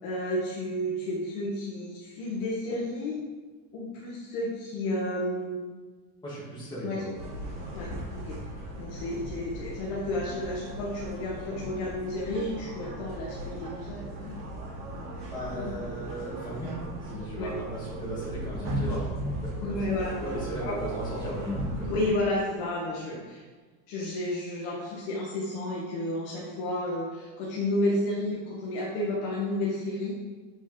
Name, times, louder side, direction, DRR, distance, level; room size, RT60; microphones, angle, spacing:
voice 1, 0.0-3.1 3.7-5.7 6.8-7.0 7.7-8.4 8.8-14.3 15.5-15.7 17.4-17.5 19.6-20.8 21.8-23.4 23.9-30.1, left 1 dB, 45° left, -4 dB, 1.2 m, -31 dB
voice 2, 6.2-7.1 15.3-16.7 17.0-19.8 20.0-22.0, right 1 dB, 10° left, -8 dB, 2.3 m, -37 dB
sound 1, 7.1-22.1, right 1 dB, 25° right, 2.4 m, -37 dB
7.5 x 5.3 x 3.7 m, 1.3 s
cardioid pair, 175°, 48 cm